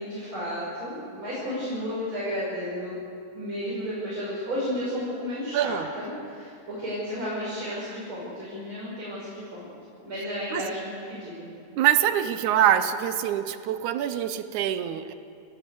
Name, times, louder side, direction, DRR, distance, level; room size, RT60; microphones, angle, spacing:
voice 1, 0.0-3.0 3.3-9.7 10.0-11.5, equal, 40° right, -8 dB, 6.4 m, -33 dB
voice 2, 5.5-5.9 10.5-10.7 11.8-15.1, right 10 dB, 75° right, 11 dB, 2.2 m, -24 dB
29.0 x 14.0 x 7.8 m, 2.5 s
omnidirectional pair, 3.7 m